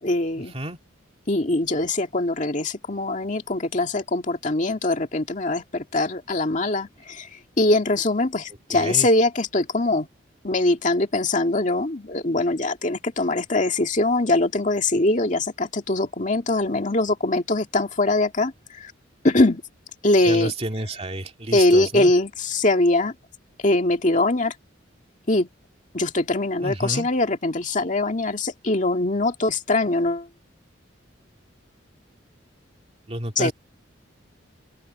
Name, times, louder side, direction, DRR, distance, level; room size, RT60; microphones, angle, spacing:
voice 1, 0.0-0.5 1.3-10.1 10.4-18.9 19.2-19.6 20.0-20.5 21.5-23.1 23.6-24.5 25.3-25.5 25.9-30.3 33.4-33.5, left 2 dB, 40° left, 2.1 m, -22 dB
voice 2, 8.7-9.1 20.2-22.1 26.6-27.1 33.1-33.5, right 1 dB, 30° right, 2.6 m, -30 dB
open air
head